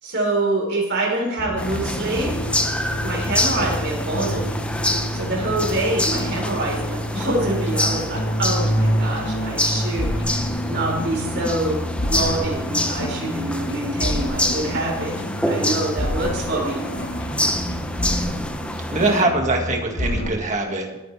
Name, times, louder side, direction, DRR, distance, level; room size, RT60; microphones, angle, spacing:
voice 1, 0.0-2.3 3.0-4.6 5.1-15.1 15.5-16.8, right 2 dB, 50° right, -1 dB, 4.3 m, -26 dB
sound 1, 1.4-20.3, equal, 55° left, 1.7 m, -27 dB
sound 2, 1.6-19.2, left 1 dB, 5° left, 0.8 m, -27 dB
voice 2, 18.9-21.0, right 2 dB, 35° right, 2 dB, 2.0 m, -22 dB
22.0 x 9.6 x 3.4 m, 1.0 s
head